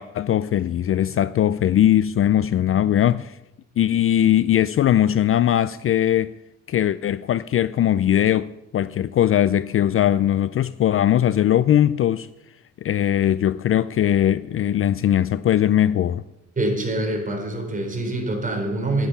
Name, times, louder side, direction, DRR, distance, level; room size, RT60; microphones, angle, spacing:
voice 1, 0.0-3.3 3.8-6.3 6.7-12.3 12.8-16.2, left 11 dB, 45° left, 0.4 m, -20 dB
voice 2, 16.6-19.1, right 2 dB, 25° right, 4.3 m, -25 dB
11.0 x 10.0 x 7.0 m
cardioid pair, 90°, 30 cm